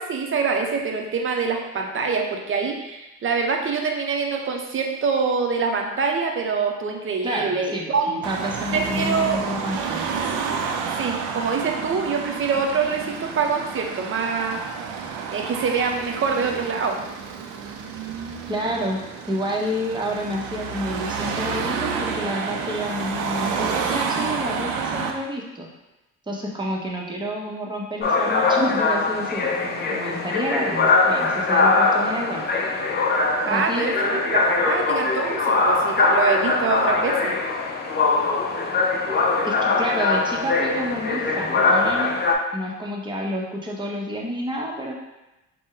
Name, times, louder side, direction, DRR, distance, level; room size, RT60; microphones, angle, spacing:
voice 1, 0.0-8.2 8.7-9.4 10.9-14.6 15.3-17.0 33.4-37.4, right 5 dB, 40° right, 2 dB, 0.7 m, -25 dB
voice 2, 7.2-10.1 18.5-19.0 19.3-25.7 26.3-32.4 33.5-33.8 39.4-42.1 42.5-44.9, equal, 15° right, -2 dB, 0.9 m, -29 dB
Car passing by / Traffic noise roadway noise / Engine, 8.2-25.1, right 6 dB, 90° right, 0.5 m, -30 dB
sound 1, 28.0-42.4, left 3 dB, 35° left, 0.6 m, -22 dB
4.1 x 2.2 x 3.7 m, 0.99 s
cardioid pair, 80°, 30 cm